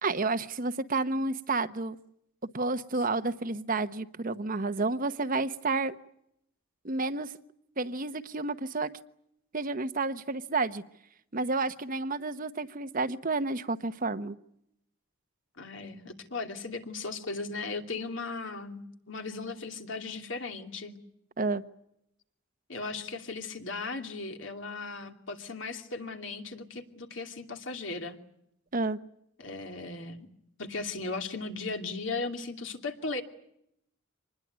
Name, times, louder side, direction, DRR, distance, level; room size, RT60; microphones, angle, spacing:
voice 1, 0.0-2.0 2.5-5.9 6.8-7.3 7.8-8.9 9.5-10.8 11.3-14.4 21.4-21.6 28.7-29.0, right 3 dB, 45° right, 11 dB, 1.1 m, -30 dB
voice 2, 15.6-21.0 22.7-28.2 29.4-30.3 30.6-33.2, left 3 dB, 65° left, 5 dB, 2.8 m, -37 dB
26.0 x 20.5 x 9.5 m, 0.76 s
head